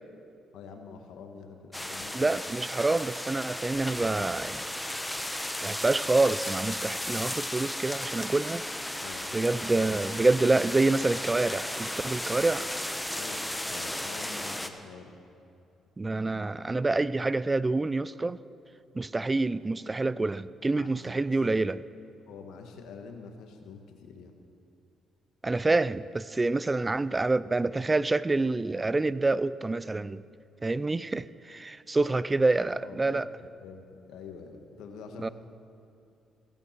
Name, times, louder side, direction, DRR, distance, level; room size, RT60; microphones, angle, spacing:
voice 1, 0.5-2.3 9.0-9.3 13.1-15.2 20.8-21.2 22.3-24.3 32.0-32.2 32.8-33.2 33.6-35.3, left 5 dB, 85° left, 5 dB, 1.4 m, -46 dB
sound 1, 1.7-14.7, left 1 dB, 5° left, 0.9 m, -35 dB
voice 2, 2.1-4.6 5.6-8.6 9.3-12.7 16.0-18.4 18.9-21.8 25.4-30.2 30.6-33.3 35.2-35.3, right 3 dB, 20° right, 17 dB, 0.4 m, -27 dB
16.0 x 14.0 x 4.5 m, 2.6 s
cardioid pair, 90°, 0 cm